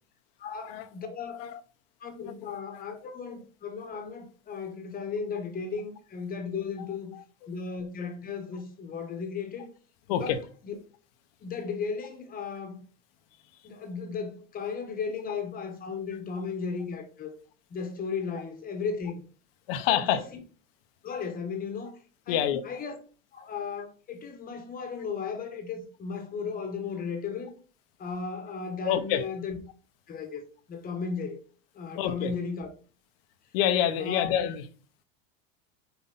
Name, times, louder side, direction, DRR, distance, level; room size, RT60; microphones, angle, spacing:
voice 1, 0.4-1.5 2.0-7.1 7.5-9.7 10.1-10.3 10.6-10.7 11.4-12.8 13.6-17.4 17.7-19.2 19.9-20.4 21.0-22.0 22.3-22.9 23.3-27.6 28.0-29.6 30.1-30.4 30.7-31.4 31.7-32.7 34.0-34.3, left 5 dB, 30° left, 1.3 m, -35 dB
voice 2, 2.4-2.9 7.1-7.2 10.1-10.4 19.7-20.2 22.3-22.6 28.8-29.2 32.0-32.3 33.5-34.6, left 10 dB, 75° left, 1.0 m, -27 dB
5.6 x 4.6 x 4.1 m
supercardioid pair, 135°, 30 cm